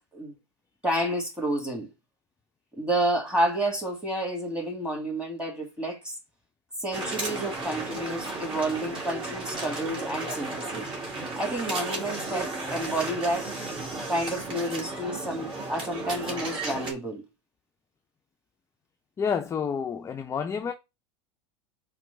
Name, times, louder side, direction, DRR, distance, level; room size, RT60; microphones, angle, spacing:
voice 1, 0.8-1.9 2.8-6.1 6.8-10.9 11.4-13.5 14.1-17.2, right 1 dB, 5° right, 1.7 m, -30 dB
sound 1, 6.9-16.9, right 2 dB, 35° right, 1.7 m, -34 dB
voice 2, 19.2-20.7, left 6 dB, 20° left, 0.4 m, -29 dB
4.3 x 2.1 x 3.7 m
hypercardioid pair, 85°, 15 cm